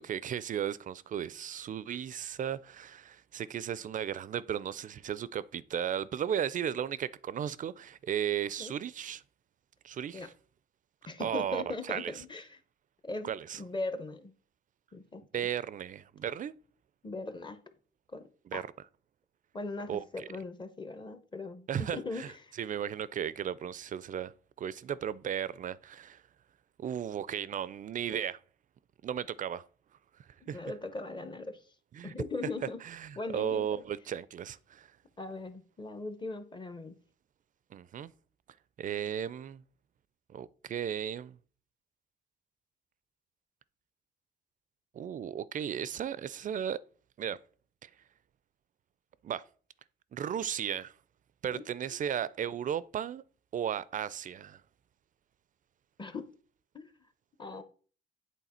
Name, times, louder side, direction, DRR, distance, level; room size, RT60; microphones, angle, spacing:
voice 1, 0.0-9.2 9.8-10.3 11.2-12.1 13.2-13.6 15.3-16.5 18.5-18.6 19.9-20.3 21.7-22.3 22.6-24.3 24.6-26.2 26.8-28.4 29.0-29.6 30.5-30.6 31.9-32.1 32.8-34.9 37.7-38.1 38.8-39.6 40.3-41.4 44.9-46.8 47.2-47.4 47.8-47.9 49.2-49.4 50.1-50.9 51.4-53.2 53.5-54.6, right 9 dB, 40° right, 0.4 m, -35 dB
voice 2, 11.1-12.6 13.0-14.3 14.9-15.5 17.0-17.6 18.1-18.6 19.5-22.5 30.4-31.6 32.0-32.8 33.2-33.8 35.2-36.9 51.5-51.6 56.0-56.3 56.7-56.9 57.4-57.6, left 3 dB, 25° left, 0.7 m, -39 dB
8.3 x 3.6 x 4.2 m
cardioid pair, 90°, 20 cm